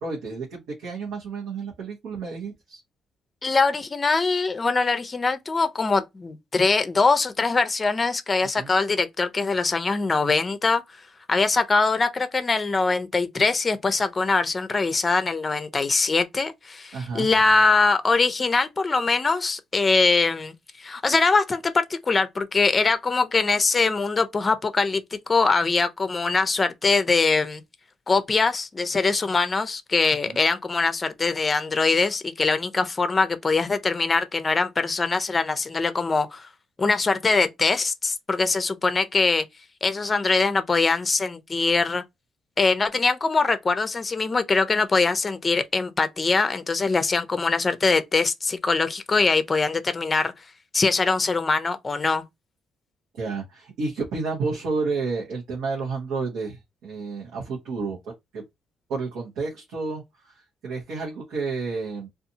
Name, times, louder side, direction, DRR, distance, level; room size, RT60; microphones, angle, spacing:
voice 1, 0.0-2.8 8.6-8.7 16.9-17.3 30.3-30.4 53.2-58.4 58.9-62.1, right 4 dB, 85° right, 0.9 m, -31 dB
voice 2, 3.4-10.8 11.3-27.6 28.1-36.5 36.8-39.5 39.8-42.0 42.6-50.3 50.7-52.2, left 4 dB, 30° left, 0.5 m, -22 dB
2.6 x 2.4 x 2.7 m
cardioid pair, 90°, 0 cm